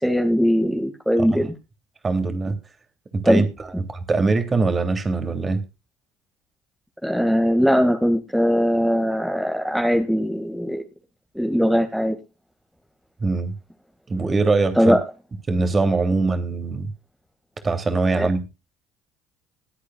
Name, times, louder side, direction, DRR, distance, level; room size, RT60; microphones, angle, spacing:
voice 1, 0.0-1.5 3.2-3.5 7.0-10.8 11.3-12.2 14.8-15.0 18.2-18.3, equal, ahead, 2.1 m, -20 dB
voice 2, 2.0-2.6 3.1-3.5 3.8-5.6 13.2-13.5 14.1-15.0 15.5-16.9 17.6-18.5, right 3 dB, 30° right, 3.0 m, -22 dB
22.0 x 8.4 x 2.4 m
figure-of-eight pair, 55°, 0 cm